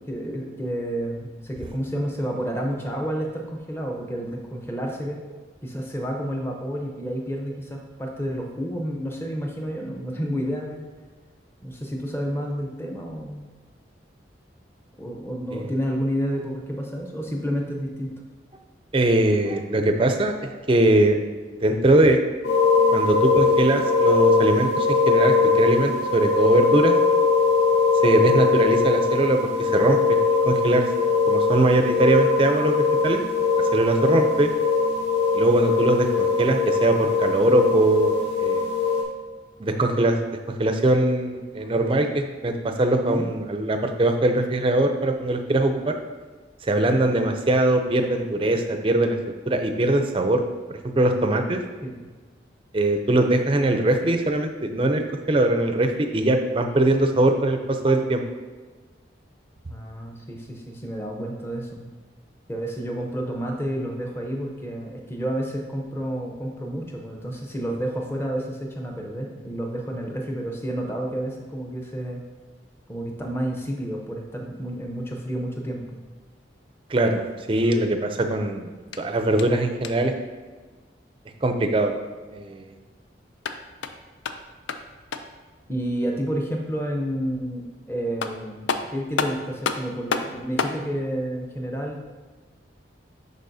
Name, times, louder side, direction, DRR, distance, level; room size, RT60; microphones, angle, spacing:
voice 1, 0.0-5.2 5.6-10.8 11.6-13.4 15.0-18.1 34.1-34.4 43.1-43.3 51.8-52.1 59.7-61.9 62.5-72.2 72.9-75.8 85.7-92.2, equal, 15° left, 1 dB, 0.7 m, -30 dB
voice 2, 18.9-21.2 21.6-22.2 22.9-26.9 28.0-30.2 30.4-30.8 31.3-33.2 33.7-34.5 35.3-38.1 38.4-38.7 39.6-40.2 40.6-46.0 46.6-49.2 49.5-50.4 50.7-51.6 52.7-58.2 76.9-77.2 77.5-78.7 79.0-80.1 81.4-82.0 82.3-82.7, right 1 dB, 30° right, 6 dB, 0.4 m, -21 dB
sound 1, 22.4-39.0, left 4 dB, 70° left, 1.8 m, -21 dB
sound 2, 78.8-80.2 83.2-85.5 87.7-87.8 88.2-90.8, left 5 dB, 85° left, 0.4 m, -31 dB
10.5 x 4.0 x 2.7 m, 1.3 s
head